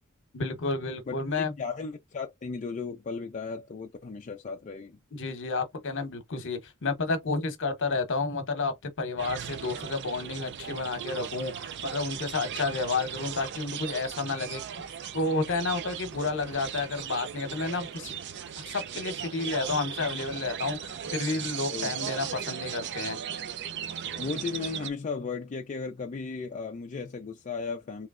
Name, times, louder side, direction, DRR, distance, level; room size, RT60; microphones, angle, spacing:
voice 1, 0.3-1.5 5.1-14.6 15.1-18.1 18.6-23.2, left 3 dB, 60° left, 0.9 m, -31 dB
voice 2, 1.1-5.0 21.7-21.9 24.2-28.1, left 4 dB, 35° left, 0.4 m, -35 dB
sound 1, 9.2-24.9, right 8 dB, 50° right, 0.4 m, -37 dB
3.2 x 2.9 x 2.4 m
head